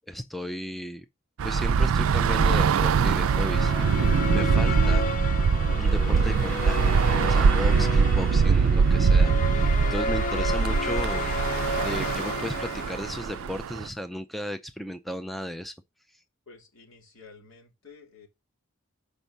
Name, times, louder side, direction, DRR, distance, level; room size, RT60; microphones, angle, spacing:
voice 1, 0.1-1.1 1.4-3.9 4.3-5.1 5.8-9.5 9.9-11.4 11.8-15.7, equal, ahead, 0.4 m, -35 dB
Bus / Traffic noise roadway noise, 1.4-13.9, right 5 dB, 75° right, 0.4 m, -23 dB
sound 1, 3.1-13.5, left 3 dB, 40° left, 0.7 m, -32 dB
voice 2, 16.5-18.3, left 4 dB, 70° left, 3.1 m, -51 dB
6.7 x 5.3 x 5.9 m
head